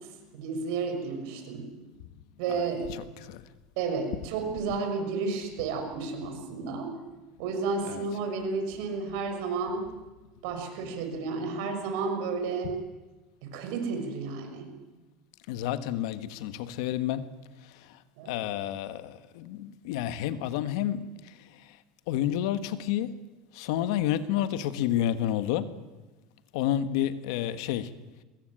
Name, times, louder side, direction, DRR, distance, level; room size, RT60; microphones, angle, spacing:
voice 1, 0.3-1.7 2.4-2.8 3.8-6.9 7.4-9.8 10.4-12.7 13.4-14.7 18.2-18.3, right 4 dB, 70° right, 6.2 m, -32 dB
voice 2, 2.5-3.4 7.9-8.0 15.5-17.3 18.3-21.0 22.1-23.1 23.6-25.7 26.5-27.9, left 11 dB, 75° left, 1.5 m, -30 dB
23.0 x 21.0 x 9.0 m
supercardioid pair, 140°, 3 cm